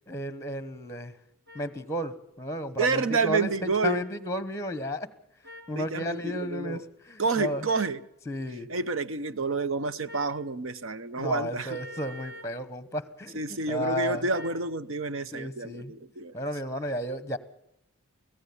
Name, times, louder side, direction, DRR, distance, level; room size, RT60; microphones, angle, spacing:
voice 1, 0.1-1.1 1.5-5.1 5.7-7.7 8.3-8.7 11.2-14.3 15.3-15.9 16.3-17.4, equal, 15° left, 1.1 m, -33 dB
sound 1, 1.5-1.6 2.9-3.0 3.8-4.1 5.4-5.7 7.3-7.9 10.1-10.4 11.7-12.5 14.3-14.6, left 1 dB, 45° right, 2.8 m, -45 dB
voice 2, 2.8-4.0 5.8-6.8 7.2-8.0 8.7-11.8 13.3-16.3, right 4 dB, 65° right, 0.8 m, -29 dB
24.0 x 16.5 x 7.1 m
head